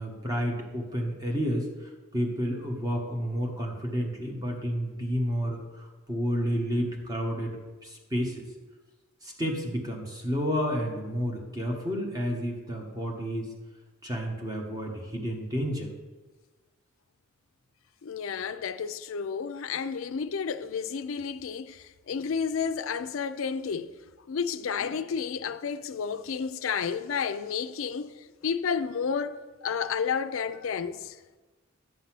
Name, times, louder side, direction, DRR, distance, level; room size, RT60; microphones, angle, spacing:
voice 1, 0.0-8.4 9.2-13.5 14.0-15.9, equal, 20° right, 1.5 m, -31 dB
voice 2, 18.0-23.9 24.3-28.1 28.4-31.2, left 6 dB, 75° left, 0.5 m, -31 dB
11.0 x 4.1 x 7.6 m
head